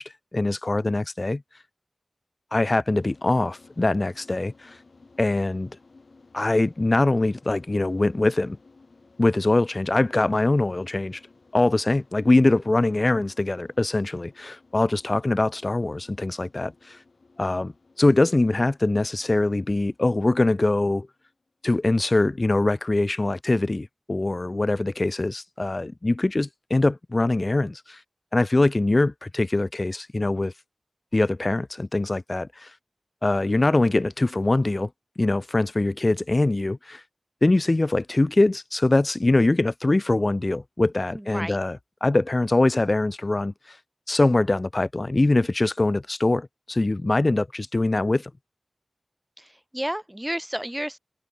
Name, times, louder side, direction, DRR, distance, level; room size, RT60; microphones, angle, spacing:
voice 1, 0.0-1.4 2.5-4.8 5.2-5.7 6.3-8.6 9.2-11.2 11.5-17.0 17.4-17.7 18.0-21.1 21.6-28.0 28.3-30.5 31.1-32.7 33.2-34.9 35.2-37.0 37.4-43.8 44.1-48.3, left 2 dB, 40° left, 0.4 m, -23 dB
sound 1, 3.0-21.7, left 3 dB, 75° left, 1.9 m, -56 dB
voice 2, 41.1-41.6 49.4-49.5 49.7-51.0, right 1 dB, 10° right, 0.7 m, -31 dB
wide cardioid pair, 65°, 0 cm